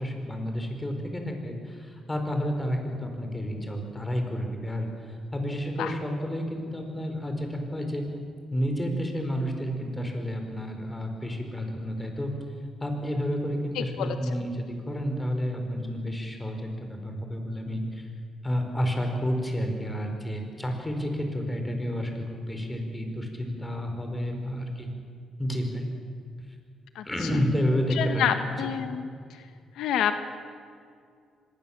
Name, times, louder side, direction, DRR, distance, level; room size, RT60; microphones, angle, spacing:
voice 1, 0.0-4.9 5.3-8.0 8.5-12.3 12.8-18.1 18.4-24.9 25.4-25.9 27.0-28.3, equal, 15° left, 4 dB, 4.9 m, -30 dB
voice 2, 13.7-14.2 26.9-27.3 27.9-29.0 29.3-29.4 29.8-30.2, left 9 dB, 85° left, 8 dB, 1.3 m, -28 dB
24.5 x 20.5 x 7.4 m, 2.3 s
cardioid pair, 90°, 0 cm